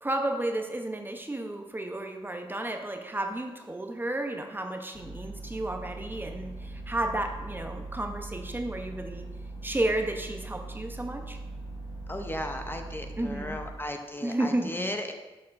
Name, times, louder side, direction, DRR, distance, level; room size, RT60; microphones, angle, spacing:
voice 1, 0.0-9.2 9.6-11.4 13.2-13.6 14.2-14.8, right 1 dB, 20° right, 4 dB, 0.8 m, -32 dB
sound 1, 4.9-13.7, right 2 dB, 60° left, 1.1 m, -41 dB
voice 2, 12.1-15.1, left 1 dB, 20° left, 4 dB, 0.7 m, -35 dB
11.5 x 4.3 x 2.6 m, 1.1 s
cardioid pair, 50°, 10 cm